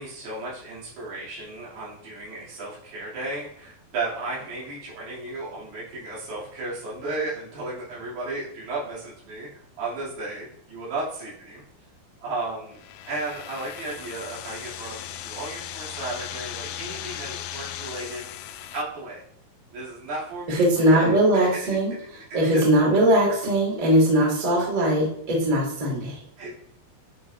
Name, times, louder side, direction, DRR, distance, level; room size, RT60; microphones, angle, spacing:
voice 1, 0.0-9.5 9.8-11.6 12.2-12.8 13.1-18.3 18.7-19.2 19.7-20.6 20.9-21.7 22.5-22.6 26.4-26.5, right 2 dB, 75° right, -7 dB, 4.9 m, -34 dB
sound 1, 12.7-18.8, left 11 dB, 90° left, 2.1 m, -37 dB
voice 2, 20.5-21.9 22.3-26.2, right 1 dB, 25° right, -3 dB, 2.1 m, -20 dB
10.0 x 6.1 x 2.7 m, 0.70 s
omnidirectional pair, 4.8 m